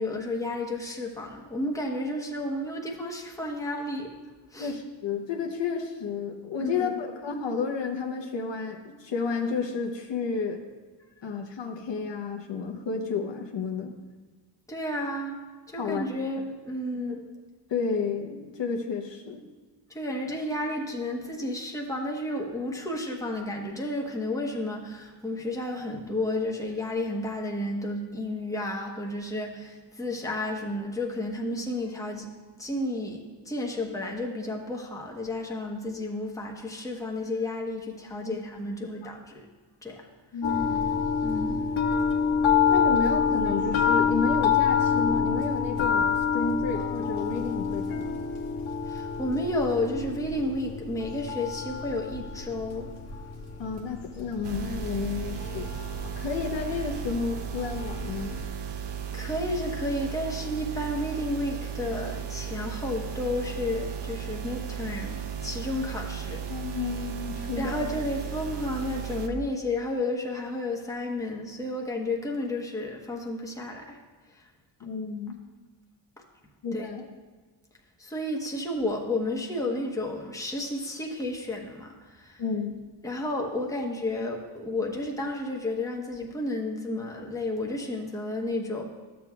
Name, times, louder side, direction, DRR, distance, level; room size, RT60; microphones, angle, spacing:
voice 1, 0.0-4.1 4.5-4.7 6.6-7.0 14.7-15.4 15.7-17.2 19.9-32.3 32.6-33.2 33.4-39.2 39.8-40.1 41.2-41.7 48.9-52.9 59.1-66.4 67.6-74.0 74.3-74.5 76.7-76.9 78.0-82.4 83.0-88.8, left 1 dB, 5° left, -1 dB, 1.1 m, -32 dB
voice 2, 4.6-10.6 11.2-14.0 15.8-16.1 17.1-17.2 17.7-19.4 38.3-38.4 40.3-41.0 42.7-48.2 53.6-55.7 56.0-58.5 66.5-67.9 74.8-75.4 76.6-77.1 82.4-82.8, left 5 dB, 65° left, 2 dB, 0.9 m, -31 dB
sound 1, 40.4-58.4, left 6 dB, 80° left, 1.2 m, -27 dB
sound 2, 54.4-69.3, right 8 dB, 60° right, 0.8 m, -35 dB
12.5 x 7.4 x 2.4 m, 1.3 s
cardioid pair, 90°, 48 cm